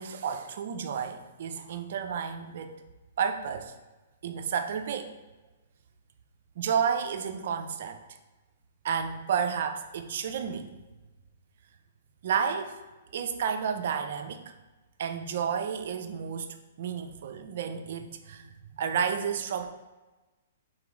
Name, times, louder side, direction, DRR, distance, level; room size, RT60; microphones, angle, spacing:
voice 1, 0.0-2.8 3.2-3.7 4.2-5.1 6.6-8.0 8.8-10.7 12.2-12.8 13.1-14.4 15.0-19.7, right 7 dB, 65° right, 7 dB, 0.4 m, -31 dB
3.8 x 3.0 x 3.6 m, 1.2 s
hypercardioid pair, 140°, 0 cm